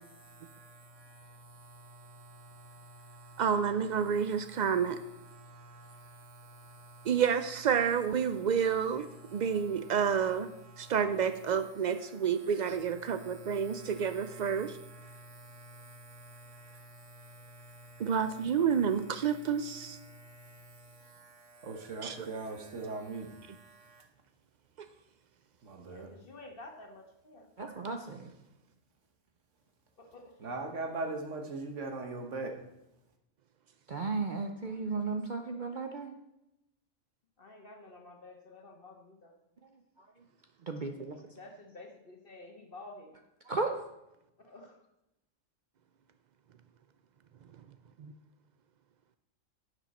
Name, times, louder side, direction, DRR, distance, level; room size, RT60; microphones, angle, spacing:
voice 1, 0.3-7.2 8.2-11.1 11.8-24.0 25.6-26.1 30.4-32.6, right 2 dB, 65° right, 1.6 m, -45 dB
voice 2, 3.4-5.0 7.1-14.8 18.0-20.0 22.0-22.3 48.0-48.1, right 7 dB, 80° right, 0.4 m, -29 dB
voice 3, 25.8-27.5 30.0-30.3 37.4-39.3 41.3-43.1 44.4-44.8, left 2 dB, 45° left, 1.5 m, -50 dB
voice 4, 27.6-28.3 33.9-36.1 40.7-41.1 43.5-43.7, right 4 dB, 45° right, 0.7 m, -34 dB
11.5 x 8.0 x 4.2 m
omnidirectional pair, 1.4 m